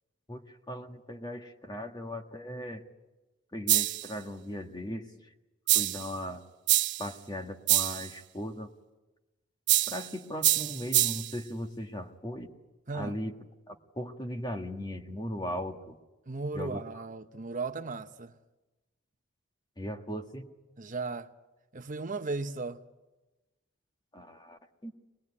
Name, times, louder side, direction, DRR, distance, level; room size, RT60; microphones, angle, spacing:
voice 1, 0.3-2.8 3.5-5.1 5.7-6.4 7.0-8.7 9.9-12.5 12.9-13.4 13.7-16.0 16.5-16.8 19.8-20.4 24.1-24.9, equal, 20° left, 1.6 m, -38 dB
sound 1, 3.7-4.1 5.7-6.1 6.7-7.1 7.7-8.1 9.7-10.1 10.4-11.3, right 15 dB, 60° right, 1.0 m, -25 dB
voice 2, 16.3-18.3 20.8-21.3 21.7-22.8, right 3 dB, 40° right, 0.8 m, -36 dB
25.5 x 20.0 x 9.8 m
head